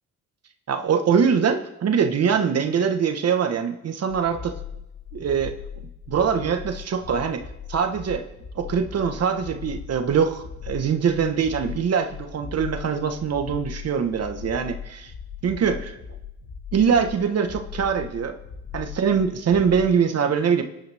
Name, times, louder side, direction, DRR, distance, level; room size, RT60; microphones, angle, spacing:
voice 1, 0.7-4.5 5.1-5.5 6.1-7.4 7.7-8.3 8.5-15.1 15.4-16.0 16.7-18.4 18.7-20.6, right 6 dB, 55° right, 6 dB, 1.4 m, -23 dB
sound 1, 4.1-19.9, left 7 dB, 55° left, 2.1 m, -39 dB
26.0 x 10.5 x 3.6 m, 0.88 s
cardioid pair, 90°, 30 cm